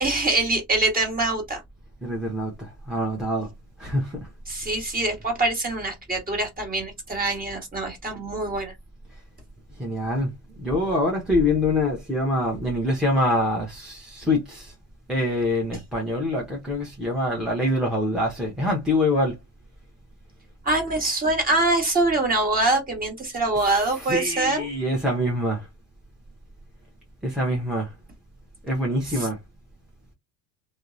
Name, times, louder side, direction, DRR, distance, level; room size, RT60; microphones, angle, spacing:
voice 1, 0.0-1.6 4.5-8.7 20.6-24.7 29.2-29.3, right 2 dB, 20° right, 1.2 m, -24 dB
voice 2, 2.0-3.5 3.8-4.3 9.8-14.7 15.1-19.4 23.6-25.7 27.2-27.9 28.7-29.4, left 1 dB, ahead, 0.6 m, -25 dB
2.7 x 2.0 x 2.4 m
supercardioid pair, 95°, 43 cm